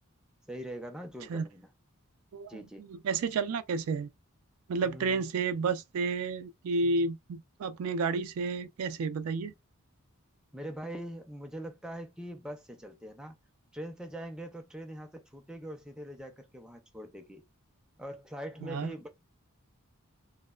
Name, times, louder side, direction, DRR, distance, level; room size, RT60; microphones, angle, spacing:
voice 1, 0.5-1.7 2.5-2.9 4.8-5.3 10.5-13.3 13.7-17.4 18.0-19.1, right 1 dB, 5° right, 0.4 m, -42 dB
voice 2, 2.3-4.1 4.7-9.5 18.6-18.9, right 4 dB, 75° right, 0.3 m, -31 dB
3.0 x 2.0 x 2.2 m
head